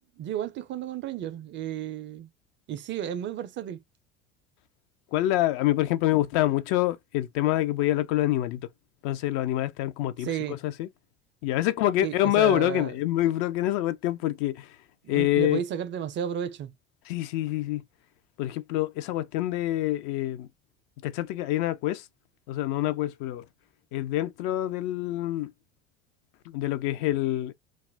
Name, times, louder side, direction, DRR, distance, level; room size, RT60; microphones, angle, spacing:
voice 1, 0.2-2.3 2.7-3.8 10.2-10.6 12.0-12.9 15.0-16.7, right 10 dB, 35° right, 0.4 m, -33 dB
voice 2, 5.1-8.6 9.0-10.9 11.4-14.8 15.1-15.6 17.1-17.8 18.4-20.5 21.0-22.1 22.5-23.4 23.9-25.5 26.5-27.5, left 14 dB, 60° left, 0.4 m, -26 dB
2.3 x 2.0 x 3.2 m
hypercardioid pair, 75°, 34 cm